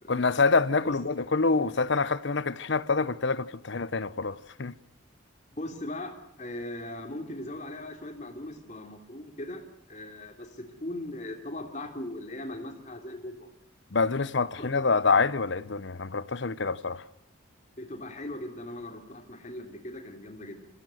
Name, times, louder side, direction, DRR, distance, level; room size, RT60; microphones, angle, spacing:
voice 1, 0.1-4.7 13.9-17.0, left 4 dB, 60° left, 0.8 m, -26 dB
voice 2, 5.6-9.6 9.9-13.5 14.6-14.8 17.8-20.7, left 1 dB, 35° left, 3.4 m, -39 dB
27.0 x 15.0 x 7.8 m
head